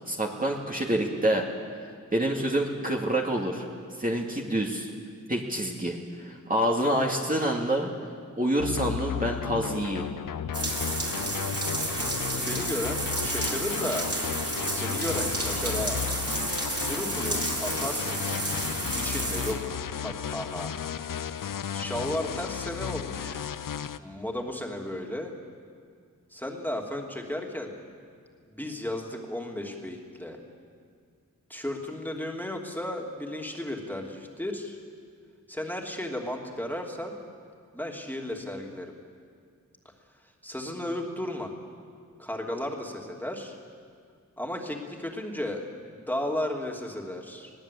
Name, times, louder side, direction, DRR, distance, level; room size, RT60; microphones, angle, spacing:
voice 1, 0.1-1.5 2.1-3.7 4.0-4.9 5.3-7.9 8.4-10.1, right 1 dB, 25° right, -1 dB, 2.4 m, -27 dB
sound 1, 8.6-24.0, left 8 dB, 90° left, 0.6 m, -34 dB
sound 2, 10.5-19.5, right 2 dB, 45° right, 4.3 m, -31 dB
voice 2, 12.3-14.1 14.6-16.0 16.8-18.4 19.0-20.7 21.7-23.5 24.0-25.3 26.3-27.8 28.5-30.4 31.5-34.8 35.5-37.2 37.7-38.9 39.8-39.9 40.4-41.5 42.2-43.6 44.4-47.5, left 1 dB, 5° left, 0 dB, 2.9 m, -34 dB
20.5 x 18.0 x 8.5 m, 2.1 s
cardioid pair, 50°, 32 cm